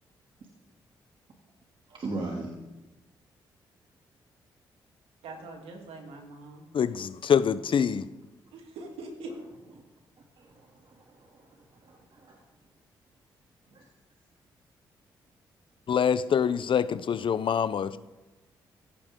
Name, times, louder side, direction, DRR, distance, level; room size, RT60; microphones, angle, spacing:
voice 1, 1.9-2.5 5.4-5.5 10.4-11.5 11.8-12.4 13.7-13.8, right 2 dB, 55° right, 0 dB, 2.7 m, -39 dB
voice 2, 5.2-6.6 8.5-9.3, right 2 dB, 80° right, 2 dB, 3.0 m, -42 dB
voice 3, 6.7-8.0 15.9-18.0, left 7 dB, 60° left, 13 dB, 0.7 m, -25 dB
16.0 x 15.0 x 3.8 m, 1.1 s
hypercardioid pair, 45°, 10 cm